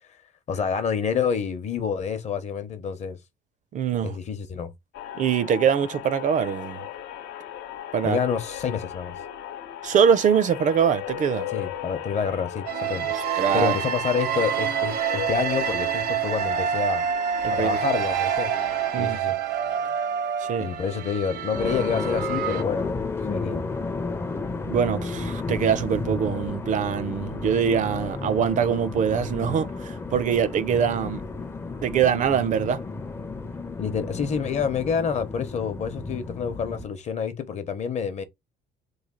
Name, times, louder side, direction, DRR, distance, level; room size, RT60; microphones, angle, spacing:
voice 1, 0.5-3.2 4.0-4.7 8.0-9.1 11.5-13.1 13.5-17.1 17.5-18.5 19.0-19.4 20.6-23.7 33.8-38.2, left 6 dB, 45° left, 0.7 m, -28 dB
voice 2, 3.7-4.2 5.1-6.8 7.9-8.2 9.8-11.5 13.1-13.8 17.4-17.8 18.9-19.2 20.4-20.7 24.7-31.2 31.8-32.8, right 7 dB, 50° right, 0.4 m, -23 dB
sound 1, 4.9-19.2, left 10 dB, 75° left, 0.6 m, -37 dB
sound 2, 12.7-22.6, right 8 dB, 80° right, 0.7 m, -27 dB
sound 3, 21.5-36.9, left 3 dB, 15° left, 0.4 m, -32 dB
3.2 x 2.3 x 3.7 m
cardioid pair, 110°, 17 cm